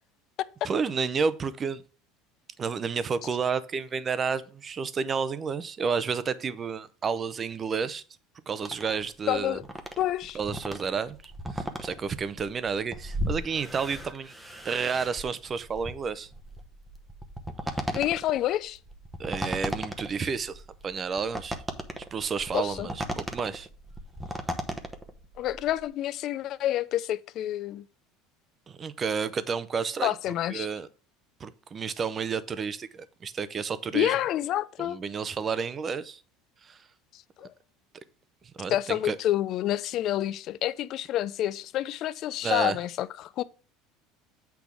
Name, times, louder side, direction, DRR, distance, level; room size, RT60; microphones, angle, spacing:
voice 1, 0.6-1.8 2.6-8.0 8.5-9.6 10.3-14.3 14.6-16.3 19.2-21.6 22.1-23.7 28.7-30.1 30.5-30.9 31.4-34.1 34.8-36.2 36.6-36.8 38.6-39.2 42.4-42.8, right 5 dB, 25° right, 0.6 m, -31 dB
sound 1, 8.6-25.9, right 1 dB, 5° right, 0.9 m, -37 dB
voice 2, 9.3-9.6 10.0-10.4 17.9-18.8 22.5-22.9 25.4-27.9 30.0-30.7 33.9-35.0 37.1-37.5 38.7-43.4, left 13 dB, 50° left, 0.4 m, -28 dB
8.2 x 3.5 x 6.0 m
supercardioid pair, 135°, 0 cm